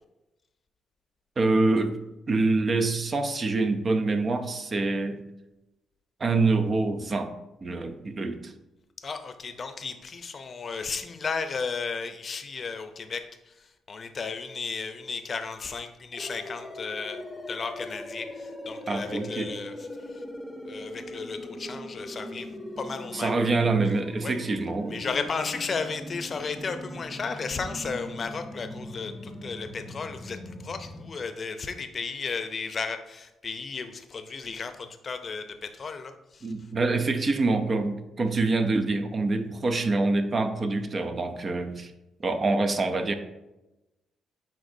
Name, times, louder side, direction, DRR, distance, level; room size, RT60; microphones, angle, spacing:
voice 1, 1.4-2.0 2.3-5.2 6.2-7.3 7.6-8.5 18.9-19.5 23.1-25.0 36.4-41.9 42.2-43.1, right 3 dB, 40° right, 8 dB, 0.6 m, -25 dB
voice 2, 9.0-13.3 13.9-17.2 17.5-19.7 20.7-22.5 22.8-23.3 24.2-24.3 24.9-36.5, left 5 dB, 40° left, 8 dB, 0.6 m, -34 dB
sound 1, 16.1-31.0, left 1 dB, 5° left, 0.8 m, -40 dB
9.8 x 3.6 x 2.7 m, 0.98 s
cardioid pair, 90°, 0 cm